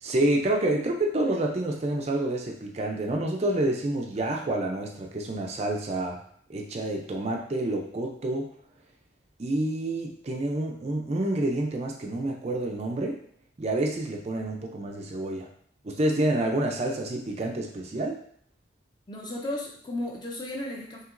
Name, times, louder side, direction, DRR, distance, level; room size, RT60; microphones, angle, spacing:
voice 1, 0.0-6.2 6.5-8.5 9.4-13.2 13.6-15.5 15.8-18.2, right 1 dB, 35° right, 1 dB, 0.4 m, -28 dB
voice 2, 19.1-21.0, left 1 dB, 20° left, 0 dB, 0.6 m, -34 dB
5.8 x 2.9 x 2.5 m, 0.62 s
head